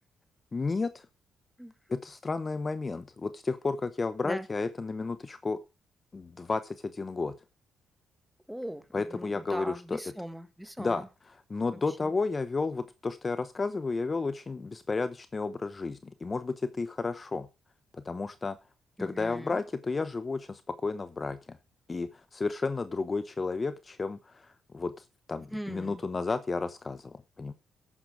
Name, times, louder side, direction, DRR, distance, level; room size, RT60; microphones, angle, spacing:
voice 1, 0.5-1.1 1.9-5.6 6.1-7.3 8.9-10.0 10.8-17.5 17.9-18.6 19.0-21.6 21.9-27.5, left 3 dB, 30° left, 12 dB, 0.9 m, -32 dB
voice 2, 8.5-11.0 12.0-12.1 19.0-19.6 25.5-26.0, equal, ahead, 11 dB, 1.6 m, -39 dB
11.5 x 9.3 x 4.8 m, 0.28 s
cardioid pair, 100°, 0 cm